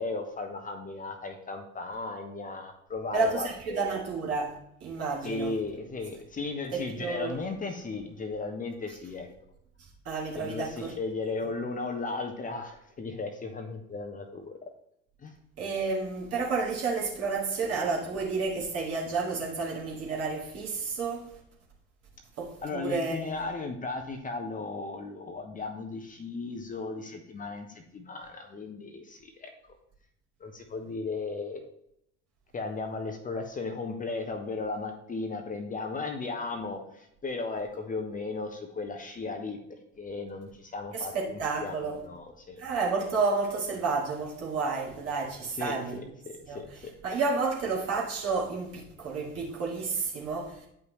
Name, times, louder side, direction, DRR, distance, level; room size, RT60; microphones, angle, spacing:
voice 1, 0.0-3.9 5.2-9.3 10.4-14.5 15.2-15.4 22.6-29.5 30.4-31.6 32.5-42.6 45.6-46.9, left 3 dB, 20° left, 1.0 m, -36 dB
voice 2, 3.1-4.5 4.8-5.6 6.7-7.4 10.0-10.9 15.6-21.4 22.4-23.4 40.9-42.0 42.6-46.1 46.5-46.6 47.0-50.7, right 4 dB, 45° right, 2.2 m, -31 dB
9.2 x 5.5 x 3.2 m
figure-of-eight pair, 60°, 35 cm